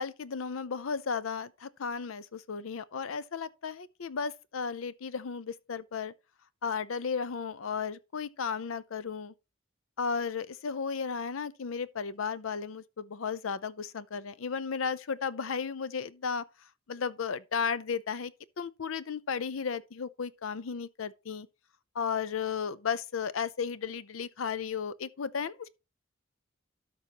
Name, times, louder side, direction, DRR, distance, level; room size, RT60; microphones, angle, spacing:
voice 1, 0.0-6.1 6.6-9.3 10.0-16.4 16.9-21.5 21.9-25.7, left 6 dB, 75° left, 0.6 m, -34 dB
12.5 x 5.2 x 2.9 m
head